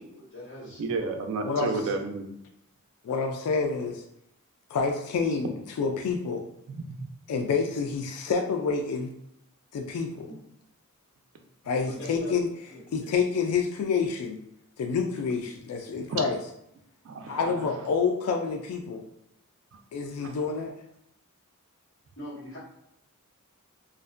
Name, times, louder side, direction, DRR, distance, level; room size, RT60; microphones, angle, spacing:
voice 1, 0.0-0.8 1.5-2.0 10.3-10.4 11.9-12.4 12.7-13.1 22.2-22.6, left 1 dB, 60° left, -7 dB, 1.2 m, -42 dB
voice 2, 0.8-2.3 6.7-7.1 16.1-16.2 17.0-17.7 19.7-19.8 20.2-20.3, right 3 dB, 65° right, 5 dB, 0.4 m, -32 dB
voice 3, 1.4-1.8 3.0-4.0 4.7-5.5 5.8-6.4 7.3-9.1 9.7-10.3 11.7-12.5 12.9-14.4 14.8-16.4 17.3-19.0 19.9-20.7, left 5 dB, 90° left, 3 dB, 0.3 m, -28 dB
2.4 x 2.1 x 2.4 m, 0.78 s
head